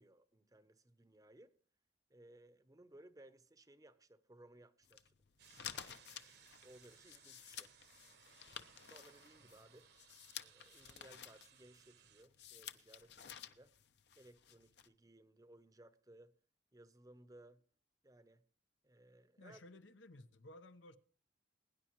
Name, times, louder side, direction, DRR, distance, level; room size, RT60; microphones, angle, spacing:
voice 1, 0.0-1.6 2.1-5.1 5.7-7.7 8.8-9.9 10.4-13.8 14.2-16.3 16.7-17.6 18.0-18.4 18.8-19.6, right 1 dB, 20° right, 0.7 m, -62 dB
sound 1, 4.8-14.9, left 9 dB, 65° left, 0.8 m, -53 dB
sound 2, 5.4-12.2, right 8 dB, 60° right, 1.1 m, -65 dB
voice 2, 19.4-21.0, left 1 dB, 85° left, 1.0 m, -57 dB
22.0 x 10.5 x 3.1 m
head